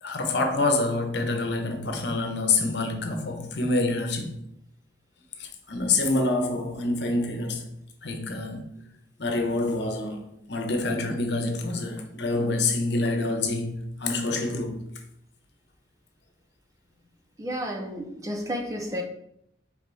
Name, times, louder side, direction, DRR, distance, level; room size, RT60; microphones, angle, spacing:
voice 1, 0.0-4.4 5.4-7.7 8.0-8.7 9.2-14.8, left 2 dB, 60° left, 1.0 m, -27 dB
voice 2, 17.4-19.0, equal, 15° right, 0.6 m, -31 dB
5.2 x 4.9 x 4.1 m
head